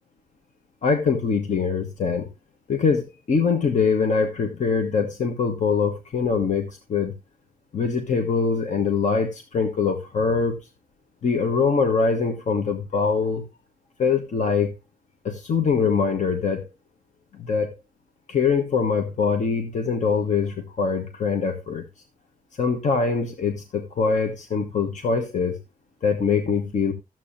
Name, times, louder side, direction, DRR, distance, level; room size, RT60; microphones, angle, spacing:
voice 1, 0.8-2.3 2.7-7.1 7.7-10.6 11.2-13.4 14.0-14.7 15.2-16.7 17.4-17.7 18.3-21.8 22.5-25.6 26.0-26.9, left 5 dB, 55° left, 1.2 m, -23 dB
13.5 x 7.6 x 2.6 m
wide cardioid pair, 150°, 15 cm